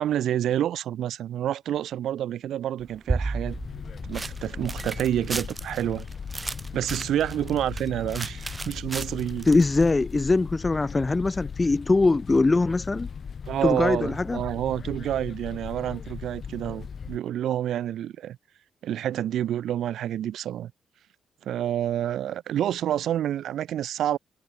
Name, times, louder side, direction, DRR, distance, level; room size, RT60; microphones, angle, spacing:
voice 1, 0.0-3.6 4.0-6.1 6.7-9.5 13.5-18.4 18.8-20.7 21.4-24.2, right 11 dB, 75° right, 0.4 m, -28 dB
sound 1, 2.8-9.9, right 3 dB, 20° right, 0.8 m, -34 dB
sound 2, 3.5-17.2, left 6 dB, 40° left, 4.2 m, -38 dB
voice 2, 9.5-13.1 13.6-14.4, left 3 dB, 20° left, 0.5 m, -22 dB
cardioid pair, 140°, 0 cm